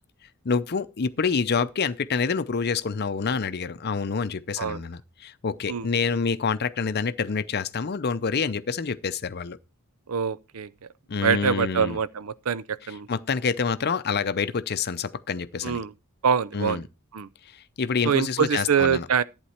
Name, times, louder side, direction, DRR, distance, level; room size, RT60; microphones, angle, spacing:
voice 1, 0.4-9.6 11.1-12.0 13.1-15.8 16.5-16.8 17.5-19.1, left 5 dB, 50° left, 0.6 m, -27 dB
voice 2, 10.1-10.7 11.2-13.1 15.6-15.9 16.2-16.8 17.1-17.3 18.0-19.2, right 7 dB, 75° right, 0.5 m, -24 dB
11.5 x 8.9 x 4.3 m
head